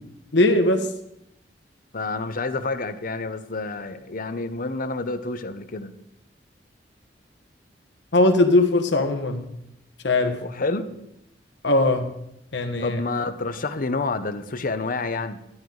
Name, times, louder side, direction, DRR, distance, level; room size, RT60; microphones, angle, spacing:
voice 1, 0.3-0.9 8.1-9.5 10.0-10.4 11.6-12.1 12.5-13.0, left 2 dB, 75° left, 5 dB, 1.2 m, -20 dB
voice 2, 1.9-5.9 10.4-10.9 12.8-15.4, left 3 dB, 50° left, 10 dB, 0.8 m, -28 dB
12.5 x 10.5 x 3.9 m, 0.79 s
head